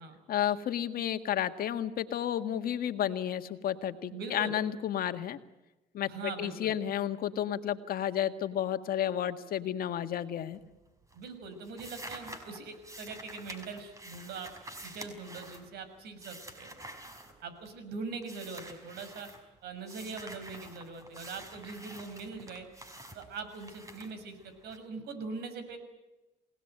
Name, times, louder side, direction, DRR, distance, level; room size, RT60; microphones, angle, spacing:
voice 1, 0.3-5.4 5.9-6.1 6.4-10.6, left 10 dB, 60° left, 8 dB, 1.8 m, -32 dB
voice 2, 4.1-4.6 6.1-6.8 11.1-14.5 14.8-16.7 17.4-19.3 19.6-22.7 23.1-25.8, right 4 dB, 75° right, 9 dB, 6.0 m, -42 dB
sound 1, 10.4-10.8 11.1-17.9 18.2-19.4 19.8-24.8, right 1 dB, 20° right, 5.2 m, -48 dB
28.5 x 18.5 x 9.1 m, 1.1 s
cardioid pair, 110°, 17 cm